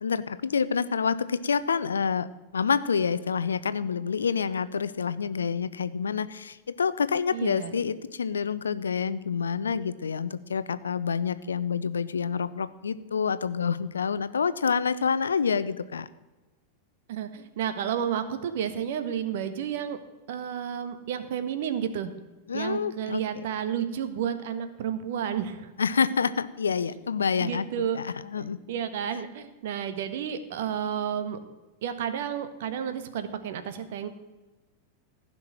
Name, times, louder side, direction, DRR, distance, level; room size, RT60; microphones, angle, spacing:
voice 1, 0.0-2.3 2.5-16.1 22.5-23.2 25.8-27.6 27.9-28.6, left 6 dB, 70° left, 15 dB, 0.6 m, -27 dB
voice 2, 7.3-7.8 17.1-20.0 20.3-22.1 22.5-25.7 27.4-28.0 28.4-31.4 31.8-34.1, right 8 dB, 55° right, 10 dB, 1.3 m, -31 dB
15.5 x 6.1 x 9.1 m, 1.2 s
figure-of-eight pair, 90°, 0 cm